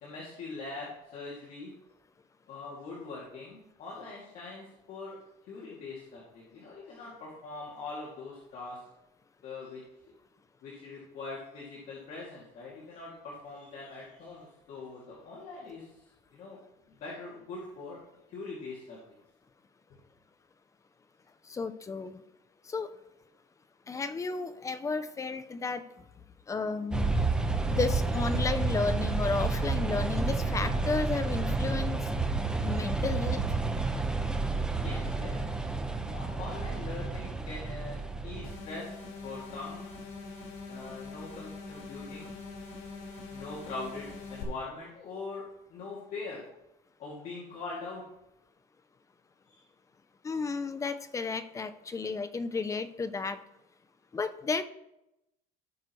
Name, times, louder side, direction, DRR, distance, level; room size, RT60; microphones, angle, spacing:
voice 1, 0.0-1.7 2.5-5.2 5.5-8.8 9.4-9.8 10.6-16.6 16.9-18.0 18.3-19.0 34.7-35.4 36.1-38.9 39.2-39.9 40.7-42.4 43.3-45.4 45.7-46.4 47.0-48.0 49.5-49.6, left 3 dB, 50° left, -6 dB, 2.5 m, -42 dB
voice 2, 21.5-22.2 22.7-22.9 23.9-25.9 26.5-27.2 27.7-32.0 32.6-33.4 50.2-53.4 54.1-54.6, left 4 dB, 20° left, 12 dB, 0.6 m, -33 dB
sound 1, 26.9-38.5, right 3 dB, 5° right, 1.0 m, -30 dB
sound 2, 38.4-44.4, left 3 dB, 85° left, 4.1 m, -43 dB
17.0 x 6.6 x 3.2 m, 0.89 s
cardioid pair, 145°, 17 cm